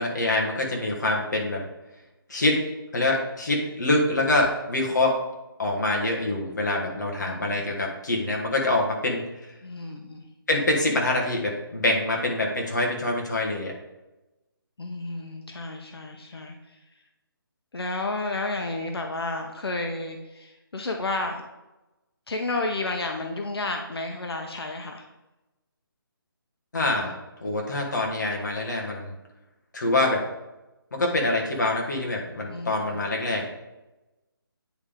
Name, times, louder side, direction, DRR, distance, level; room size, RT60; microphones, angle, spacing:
voice 1, 0.0-1.6 2.3-2.6 2.9-5.2 5.6-9.2 10.5-13.7 26.7-29.1 29.7-30.2 30.9-33.5, left 2 dB, 50° left, 0 dB, 1.4 m, -25 dB
voice 2, 7.2-7.8 9.6-10.2 14.8-16.6 17.7-21.5 22.3-25.0 32.5-33.0, left 2 dB, 90° left, 3 dB, 0.9 m, -31 dB
9.3 x 3.5 x 3.6 m, 1.0 s
hypercardioid pair, 180°, 12 cm